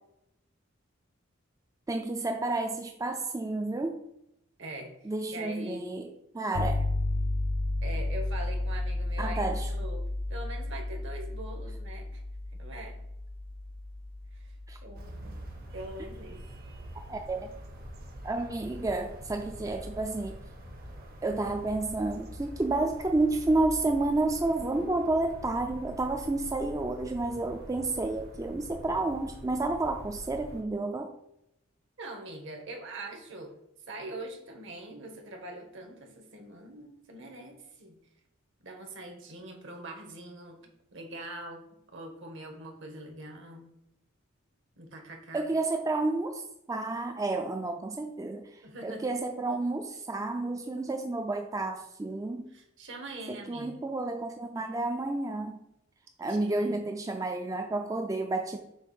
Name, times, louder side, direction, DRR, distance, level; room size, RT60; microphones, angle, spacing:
voice 1, 1.9-4.0 5.1-6.1 6.3-6.9 9.2-9.7 14.7-14.8 17.1-17.5 18.2-20.4 21.2-31.1 45.3-46.4 46.7-52.5 53.3-55.6 56.2-58.6, right 2 dB, 15° right, 4 dB, 0.4 m, -30 dB
voice 2, 4.6-5.9 7.8-10.0 10.3-12.2 12.6-13.0 14.3-14.5 14.8-15.4 15.7-16.4 32.0-33.5 33.9-38.0 38.6-40.6 40.9-41.6 41.9-43.7 44.8-45.4 48.6-49.1 52.5-53.8 56.3-56.7, right 1 dB, 65° right, 2 dB, 1.4 m, -43 dB
sound 1, 6.5-15.5, left 2 dB, 65° left, 0.5 m, -33 dB
sound 2, 14.9-30.6, equal, 50° right, 1.0 m, -45 dB
6.9 x 2.5 x 5.4 m, 0.81 s
head